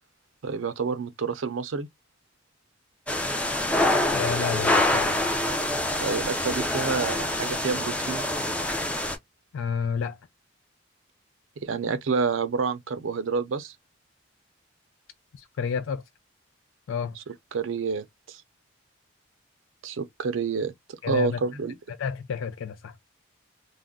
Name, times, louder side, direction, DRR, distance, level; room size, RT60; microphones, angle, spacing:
voice 1, 0.4-1.9 6.0-8.2 11.6-13.7 17.5-18.4 19.8-21.7, right 5 dB, 85° right, 0.5 m, -28 dB
sound 1, 3.1-9.2, left 1 dB, 5° left, 0.4 m, -26 dB
voice 2, 4.1-5.2 9.5-10.2 15.3-16.0 16.9-17.2 21.0-21.4 21.9-23.0, left 6 dB, 80° left, 0.3 m, -30 dB
2.4 x 2.1 x 3.5 m
head